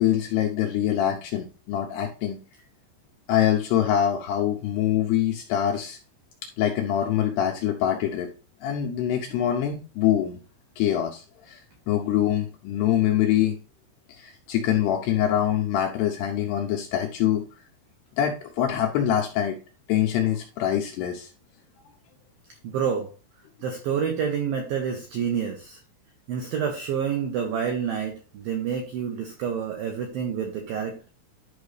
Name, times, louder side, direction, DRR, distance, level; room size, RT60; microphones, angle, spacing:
voice 1, 0.0-2.4 3.3-6.0 6.6-8.3 8.6-10.4 10.8-13.5 14.1-17.4 18.2-19.6 19.9-21.3, left 10 dB, 80° left, 3 dB, 2.4 m, -24 dB
voice 2, 22.6-23.1 23.6-25.8 26.3-31.1, right 7 dB, 85° right, 3 dB, 2.1 m, -28 dB
11.0 x 5.2 x 3.2 m, 0.34 s
omnidirectional pair, 5.5 m